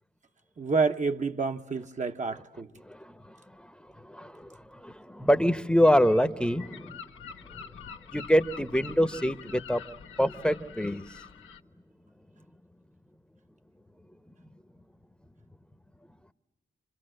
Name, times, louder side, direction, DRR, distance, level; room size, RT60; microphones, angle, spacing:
voice 1, 0.6-2.7, right 4 dB, 35° right, 0.9 m, -28 dB
voice 2, 2.8-3.2 3.6-7.0 8.1-9.8 10.2-11.1, equal, 5° left, 0.9 m, -26 dB
Gull seagull, 5.8-11.6, left 7 dB, 85° left, 1.0 m, -46 dB
28.0 x 25.5 x 7.8 m
cardioid pair, 60°, 20 cm